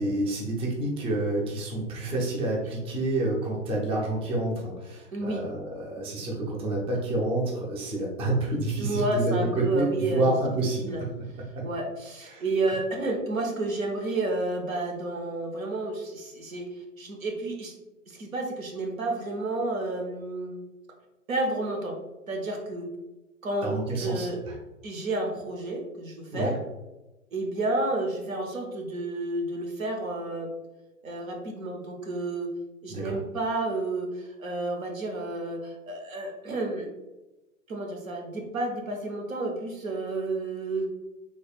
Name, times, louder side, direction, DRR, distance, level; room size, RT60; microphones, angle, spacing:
voice 1, 0.0-10.9 11.5-11.6 12.3-12.4 23.6-24.5 26.3-26.5 32.9-33.2, right 2 dB, 15° right, -2 dB, 0.5 m, -28 dB
voice 2, 5.1-5.4 8.8-10.3 10.8-11.0 11.6-17.8 18.1-20.6 21.3-22.0 22.3-22.9 23.4-24.4 24.8-26.5 27.3-30.5 31.0-32.5 32.8-36.9 37.7-40.9, right 2 dB, 85° right, 1 dB, 0.9 m, -31 dB
3.2 x 3.2 x 2.3 m, 1.0 s
hypercardioid pair, 115°, 40 cm